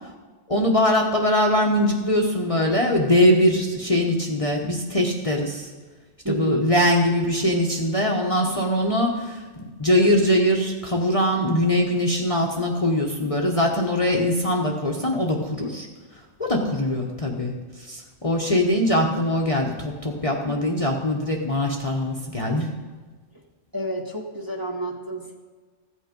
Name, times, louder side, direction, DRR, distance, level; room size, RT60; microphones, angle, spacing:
voice 1, 0.5-5.7 6.3-9.4 9.8-15.9 16.4-22.7, left 1 dB, 30° left, -1 dB, 1.1 m, -22 dB
voice 2, 6.2-6.7 23.7-25.3, right 1 dB, 15° right, -1 dB, 1.3 m, -29 dB
14.5 x 8.5 x 5.2 m, 1.4 s
omnidirectional pair, 1.3 m